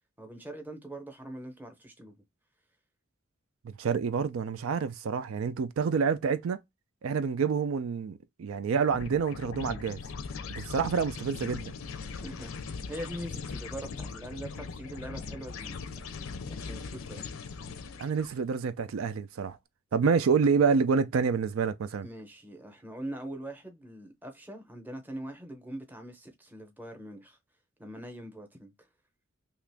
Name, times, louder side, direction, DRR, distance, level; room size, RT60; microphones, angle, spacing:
voice 1, 0.2-2.1 12.0-12.5 12.9-16.0 16.4-17.2 22.0-27.4 27.8-28.7, right 1 dB, 10° right, 0.7 m, -42 dB
voice 2, 3.6-6.6 7.0-10.0 10.5-11.7 18.0-19.6 19.9-22.1, right 5 dB, 80° right, 0.4 m, -28 dB
sound 1, 8.9-18.3, left 5 dB, 80° left, 0.5 m, -40 dB
2.9 x 2.4 x 3.3 m
head